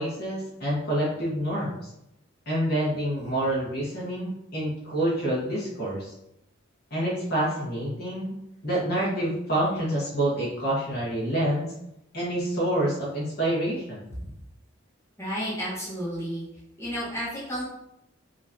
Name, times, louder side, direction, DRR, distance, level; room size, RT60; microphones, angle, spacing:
voice 1, 0.0-1.8 2.5-6.1 6.9-8.3 8.6-11.7 12.1-14.1, right 1 dB, 45° left, -6 dB, 1.4 m, -27 dB
voice 2, 15.2-16.4 16.8-17.6, equal, 15° left, -9 dB, 1.4 m, -32 dB
5.2 x 3.0 x 2.8 m, 0.83 s
head